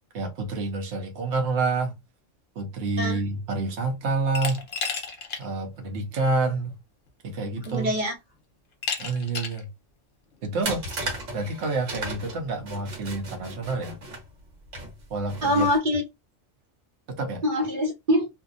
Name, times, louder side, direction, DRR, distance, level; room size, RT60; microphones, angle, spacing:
voice 1, 0.1-2.0 2.5-4.6 5.4-6.7 7.2-7.9 9.0-9.7 10.4-10.8 11.3-14.0 15.1-15.7 17.1-17.4, right 3 dB, 65° right, 1.0 m, -28 dB
Glass, 4.3-5.4 5.8-5.9 7.1-7.2 7.6-8.0 8.8-9.6, left 5 dB, 50° left, 0.8 m, -32 dB
voice 2, 7.7-8.1 15.4-16.0 17.4-18.3, left 1 dB, 45° right, 0.8 m, -24 dB
sound 1, 10.6-15.8, right 2 dB, 90° right, 1.3 m, -36 dB
2.6 x 2.1 x 2.5 m
omnidirectional pair, 1.3 m